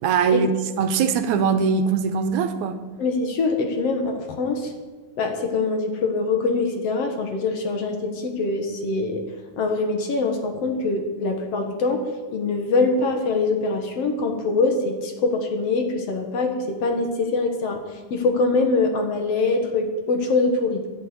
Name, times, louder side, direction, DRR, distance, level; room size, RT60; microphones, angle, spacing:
voice 1, 0.0-0.5 0.8-2.8, right 6 dB, 85° right, 9 dB, 2.3 m, -21 dB
voice 2, 3.0-4.7 5.2-9.2 9.6-17.8 18.1-20.9, left 3 dB, 60° left, 4 dB, 2.5 m, -23 dB
11.0 x 11.0 x 8.3 m, 1.3 s
omnidirectional pair, 3.4 m